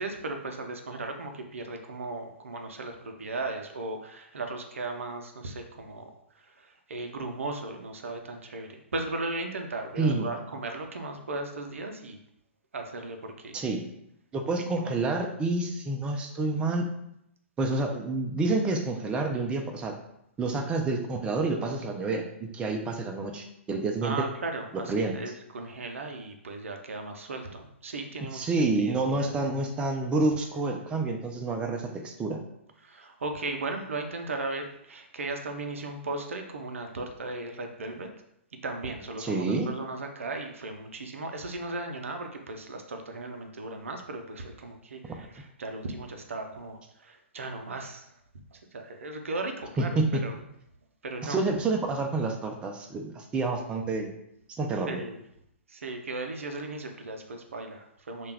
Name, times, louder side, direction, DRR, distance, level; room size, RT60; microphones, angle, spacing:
voice 1, 0.0-6.0 6.4-12.2 12.7-13.6 14.8-14.9 24.0-29.4 32.8-38.1 38.6-48.1 48.5-50.4 51.0-51.4 54.9-55.2 55.7-58.3, right 2 dB, 80° right, 4 dB, 0.4 m, -36 dB
voice 2, 10.0-10.3 13.5-13.8 14.3-16.9 17.6-19.9 20.4-24.2 24.9-25.1 28.3-32.4 39.2-39.7 49.8-50.2 51.2-54.1 54.6-55.0, right 3 dB, 15° right, 3 dB, 0.3 m, -28 dB
2.3 x 2.2 x 3.3 m, 0.77 s
hypercardioid pair, 120°, 7 cm